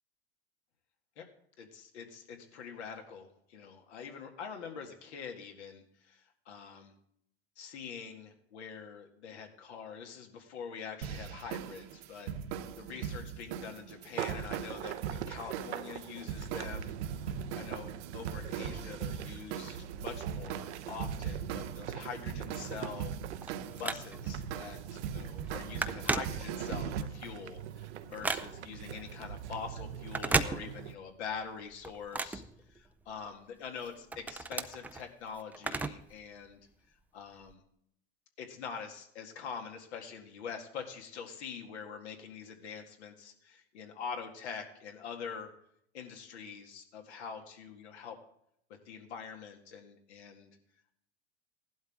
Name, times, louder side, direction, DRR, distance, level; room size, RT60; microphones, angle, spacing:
voice 1, 1.6-6.9 7.6-23.1 23.8-32.4 32.7-36.6 37.1-37.6 38.4-45.5 45.9-48.2 48.9-50.5, left 6 dB, 80° left, 3 dB, 2.0 m, -44 dB
sound 1, 11.0-27.0, right 8 dB, 65° right, 1.1 m, -40 dB
sound 2, 14.2-30.9, right 9 dB, 85° right, 0.8 m, -43 dB
Telephone, 23.0-24.4 24.9-25.1 25.4-26.9 27.3-28.8 30.0-31.1 31.4-33.2 33.6-36.2 36.5-36.6 37.4-37.5, right 3 dB, 5° right, 0.4 m, -35 dB
15.0 x 11.5 x 3.7 m, 0.72 s
hypercardioid pair, 115°, 33 cm